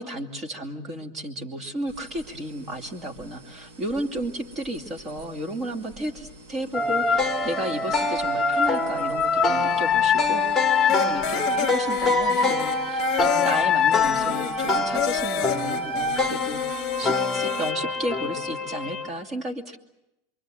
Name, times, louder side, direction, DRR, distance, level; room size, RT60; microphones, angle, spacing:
voice 1, 0.0-19.8, right 1 dB, 30° right, 5 dB, 2.6 m, -33 dB
sound 1, 1.9-17.2, right 2 dB, 60° right, 6.5 m, -48 dB
sound 2, 6.7-19.1, left 4 dB, 5° left, 1.8 m, -24 dB
sound 3, 10.9-17.7, left 15 dB, 45° left, 1.0 m, -31 dB
27.5 x 23.5 x 7.7 m, 0.88 s
supercardioid pair, 145°, 0 cm